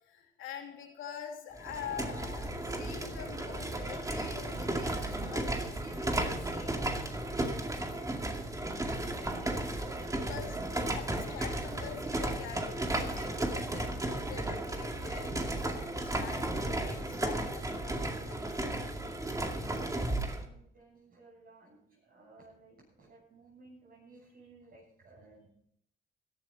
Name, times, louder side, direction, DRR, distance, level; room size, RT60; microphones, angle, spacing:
voice 1, 0.0-6.8 9.1-18.7, left 8 dB, 90° left, 2 dB, 2.9 m, -46 dB
sound 1, 1.6-20.4, right 1 dB, 15° right, 2.2 m, -34 dB
voice 2, 19.7-25.5, right 3 dB, 50° right, -6 dB, 7.2 m, -58 dB
16.5 x 12.5 x 4.2 m, 0.71 s
cardioid pair, 90°, 20 cm